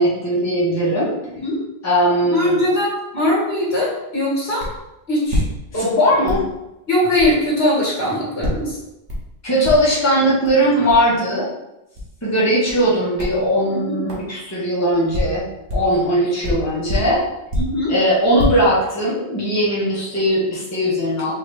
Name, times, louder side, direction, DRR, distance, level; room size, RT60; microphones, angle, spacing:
voice 1, 0.0-1.1 1.8-2.6 5.7-6.5 9.4-11.5 12.2-15.5 15.7-17.2 17.9-21.3, equal, 15° left, -7 dB, 1.1 m, -19 dB
voice 2, 1.3-1.6 2.3-4.7 5.1-5.4 5.7-6.0 6.9-8.8 13.7-14.0 17.6-17.9, left 1 dB, 65° left, -5 dB, 1.8 m, -20 dB
sound 1, 4.6-4.8 5.2-6.0 6.2-6.5 7.2-7.4 8.4-8.7 9.1-9.3 9.6-10.0 10.4-10.5 10.9-11.1 11.9-12.1 12.7-12.9 13.2-13.4 14.1-14.3 14.9-16.0 16.4-17.8 18.2-18.5, left 1 dB, 85° right, 1.5 m, -25 dB
4.9 x 2.9 x 3.3 m, 0.92 s
omnidirectional pair, 1.1 m